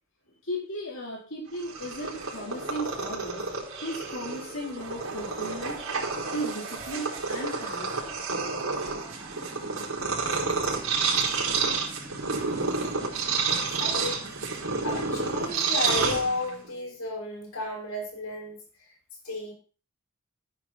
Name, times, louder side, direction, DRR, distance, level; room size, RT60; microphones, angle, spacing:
voice 1, 0.4-3.4 3.8-5.8 6.1-8.2, equal, 60° left, -4 dB, 4.4 m, -36 dB
Purr, 1.5-16.7, right 4 dB, 85° right, 4.4 m, -30 dB
sound 1, 1.7-16.9, right 1 dB, 15° right, 3.4 m, -45 dB
voice 2, 12.6-13.3 13.8-14.2 14.5-18.6 19.2-19.5, left 2 dB, 85° left, 1 dB, 6.0 m, -33 dB
14.0 x 9.7 x 4.5 m, 0.37 s
head